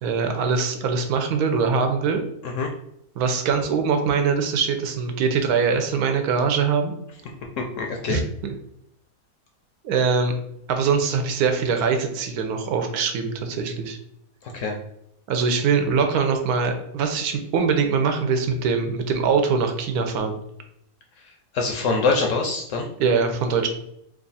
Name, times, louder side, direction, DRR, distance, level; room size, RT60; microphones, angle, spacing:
voice 1, 0.0-2.2 3.2-6.9 8.1-8.5 9.8-10.3 10.7-14.0 15.3-20.4 23.0-23.7, right 5 dB, 80° right, 5 dB, 1.1 m, -22 dB
voice 2, 7.8-8.2 14.5-14.8 21.5-22.9, left 4 dB, 70° left, 2 dB, 0.8 m, -24 dB
3.1 x 2.4 x 3.9 m, 0.77 s
omnidirectional pair, 1.6 m